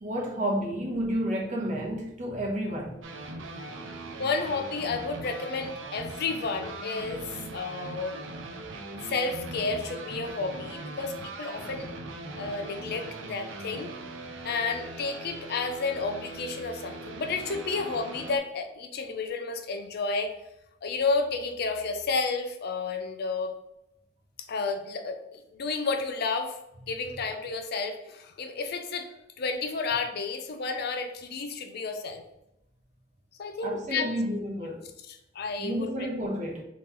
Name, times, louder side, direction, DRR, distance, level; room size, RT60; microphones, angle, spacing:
voice 1, 0.0-3.0 33.6-34.8 35.6-36.6, equal, 40° right, -1 dB, 0.8 m, -30 dB
sound 1, 3.0-18.4, right 2 dB, 85° right, 0.5 m, -40 dB
voice 2, 4.2-8.1 9.0-11.9 12.4-13.9 14.4-20.3 20.8-23.5 24.5-26.6 26.9-32.2 33.4-34.1 35.1-35.9, left 4 dB, 55° left, 6 dB, 0.5 m, -31 dB
3.7 x 3.0 x 2.9 m, 0.86 s
head